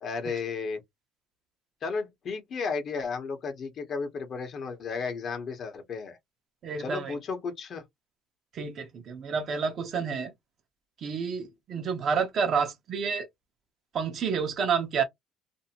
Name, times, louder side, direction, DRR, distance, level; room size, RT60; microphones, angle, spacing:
voice 1, 0.0-0.8 1.8-6.2 6.8-7.8, left 5 dB, 45° left, 0.9 m, -33 dB
voice 2, 6.6-7.2 8.5-10.3 11.0-13.3 13.9-15.0, right 6 dB, 45° right, 0.8 m, -29 dB
2.6 x 2.1 x 2.8 m
cardioid pair, 130°, 0 cm